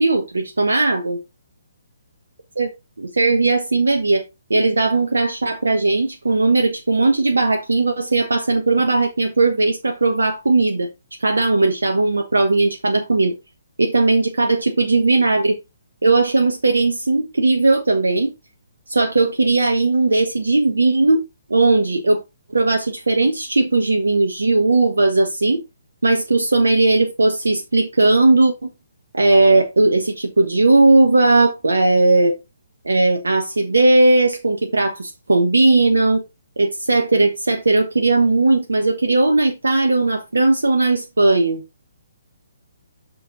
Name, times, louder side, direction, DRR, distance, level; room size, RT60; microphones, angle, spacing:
voice 1, 0.0-1.2 2.6-2.7 3.0-4.2 4.5-10.9 11.2-13.3 13.8-15.6 16.0-18.3 18.9-21.2 21.5-22.2 22.5-25.6 26.0-28.7 29.1-32.4 32.8-36.2 36.6-41.6, right 2 dB, 70° right, 1.2 m, -17 dB
7.7 x 6.5 x 3.7 m
figure-of-eight pair, 130°, 0 cm